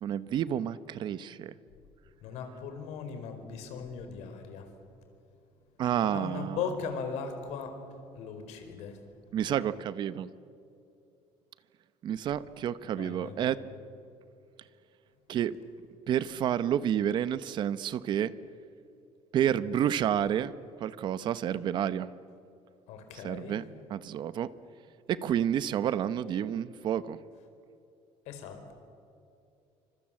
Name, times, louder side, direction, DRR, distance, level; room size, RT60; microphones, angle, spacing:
voice 1, 0.0-1.5 5.8-6.6 9.3-10.3 12.0-13.6 15.3-15.6 16.1-18.3 19.3-20.5 20.8-22.1 23.2-23.6 23.9-24.5 25.1-27.2, right 10 dB, 40° right, 15 dB, 0.9 m, -29 dB
voice 2, 2.2-4.7 6.0-7.8 8.1-9.0 13.0-13.5 19.7-20.0 22.9-23.6 28.2-28.7, left 6 dB, 75° left, 7 dB, 4.7 m, -38 dB
29.0 x 25.5 x 7.7 m, 2.6 s
cardioid pair, 170°, 11 cm